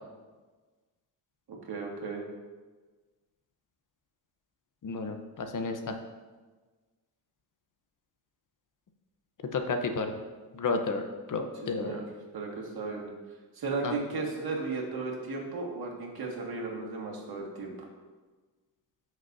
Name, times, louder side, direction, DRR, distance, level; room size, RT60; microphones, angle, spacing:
voice 1, 1.7-2.2 11.7-12.0 12.3-13.1 13.5-17.9, right 3 dB, 65° right, -1 dB, 2.1 m, -35 dB
voice 2, 4.8-6.0 9.5-10.1 10.5-12.0 13.8-14.0, left 4 dB, 50° left, 6 dB, 0.9 m, -32 dB
13.0 x 6.3 x 2.7 m, 1.3 s
cardioid pair, 110°, 40 cm